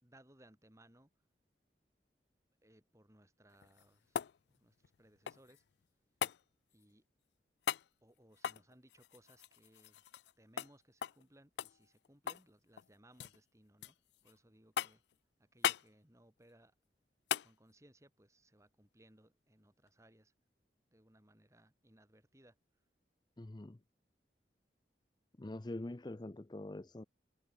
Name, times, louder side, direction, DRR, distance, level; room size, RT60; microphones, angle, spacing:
voice 1, 0.0-1.1 2.6-4.2 4.5-5.6 6.7-7.1 8.0-10.0 10.4-14.0 14.2-15.0 15.4-16.7 17.4-20.3 20.9-22.6, right 1 dB, 15° right, 3.6 m, -65 dB
sound 1, 3.5-5.6 6.2-6.4 7.6-7.9 8.4-10.3 10.6-10.7 11.0-11.2 11.6-12.5 12.8-13.4 13.8-14.3 14.8-15.1 15.6-15.9 17.3-17.5 19.9-20.0, left 9 dB, 75° left, 0.4 m, -39 dB
voice 2, 23.4-23.8 25.4-27.0, left 1 dB, 25° left, 0.5 m, -44 dB
head